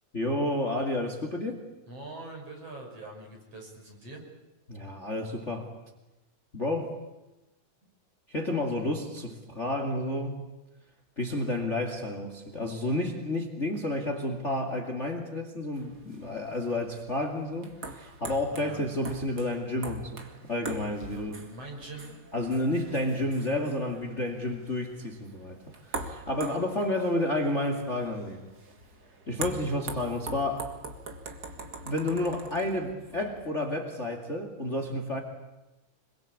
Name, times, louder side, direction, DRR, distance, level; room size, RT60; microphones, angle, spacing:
voice 1, 0.1-1.6 4.7-5.7 6.5-7.0 8.3-10.4 11.2-21.4 22.3-28.5 29.3-30.7 31.8-35.2, left 1 dB, 25° left, 4 dB, 2.4 m, -31 dB
voice 2, 1.9-4.2 18.5-18.9 21.1-22.2, right 2 dB, 50° right, 1 dB, 7.1 m, -43 dB
sound 1, 15.7-33.5, right 2 dB, 35° right, 2.3 m, -43 dB
26.5 x 23.0 x 8.6 m, 1.0 s
omnidirectional pair, 3.6 m